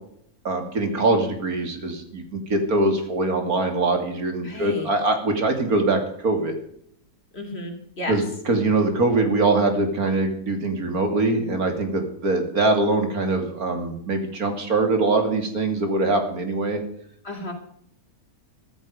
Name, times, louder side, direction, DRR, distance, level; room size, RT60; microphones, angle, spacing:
voice 1, 0.4-6.6 8.1-16.8, right 2 dB, 70° right, 5 dB, 3.1 m, -23 dB
voice 2, 4.4-4.9 7.3-8.2 17.2-17.5, left 1 dB, 40° left, 3 dB, 3.4 m, -33 dB
14.5 x 14.0 x 5.0 m, 0.68 s
omnidirectional pair, 1.6 m